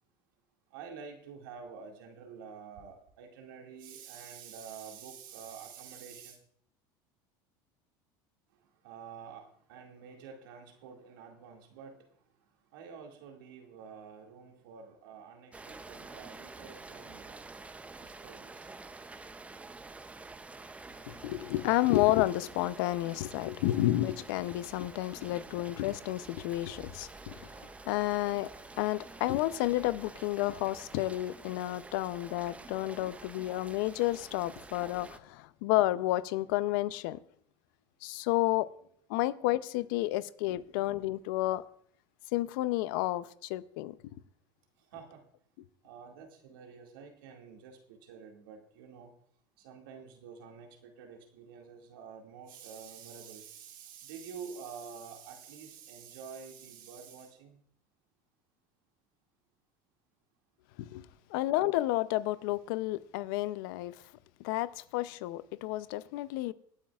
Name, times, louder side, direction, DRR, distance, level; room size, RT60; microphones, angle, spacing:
voice 1, 0.7-6.4 8.8-12.0 12.7-17.4 18.0-18.7 44.9-45.2 45.8-49.1 49.6-57.6, right 6 dB, 85° right, 2.2 m, -48 dB
Rain, 15.5-35.2, right 3 dB, 10° right, 0.6 m, -48 dB
voice 2, 21.1-28.5 28.8-37.2 38.0-38.7 39.1-41.6 42.3-44.0 60.8-64.0 64.4-66.5, left 16 dB, 75° left, 0.6 m, -31 dB
25.5 x 8.9 x 2.4 m
supercardioid pair, 110°, 11 cm